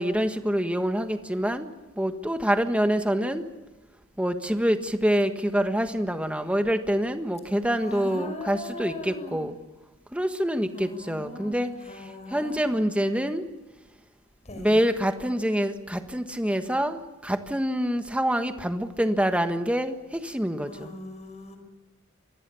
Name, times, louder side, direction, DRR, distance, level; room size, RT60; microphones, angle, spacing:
voice 1, 0.0-1.7 2.0-3.4 4.2-9.5 10.1-11.7 12.3-13.4 14.6-20.9, equal, 5° right, 7 dB, 1.5 m, -26 dB
voice 2, 7.8-9.4 10.7-12.7 14.4-14.8 20.7-21.6, left 1 dB, 35° left, 6 dB, 5.7 m, -39 dB
26.0 x 20.5 x 7.1 m, 1.1 s
head